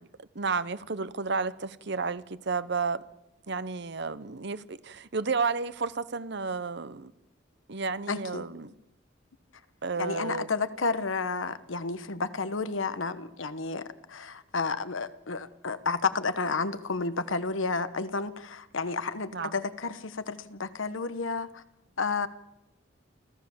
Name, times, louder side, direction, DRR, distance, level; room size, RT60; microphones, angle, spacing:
voice 1, 0.2-3.0 3.5-7.1 7.7-8.7 9.8-10.5 19.3-19.5, right 4 dB, 60° right, 0.9 m, -32 dB
voice 2, 8.1-8.5 10.0-21.6 22.0-22.3, left 4 dB, 80° left, 1.1 m, -31 dB
29.0 x 14.0 x 7.2 m
head